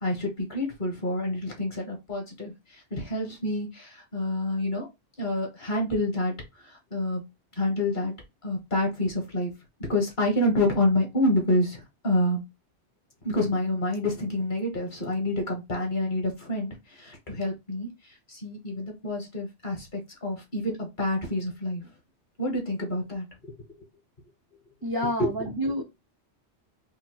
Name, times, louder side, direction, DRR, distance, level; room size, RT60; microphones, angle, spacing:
voice 1, 0.0-4.9 5.2-6.3 6.6-7.2 7.6-8.1 8.4-9.5 9.9-12.4 13.2-17.9 18.3-21.9 22.4-23.3 25.2-25.3, left 1 dB, 45° left, 1 dB, 1.4 m, -28 dB
voice 2, 24.8-25.8, equal, 30° right, 2 dB, 0.4 m, -28 dB
4.9 x 2.2 x 3.0 m, 0.22 s
omnidirectional pair, 1.2 m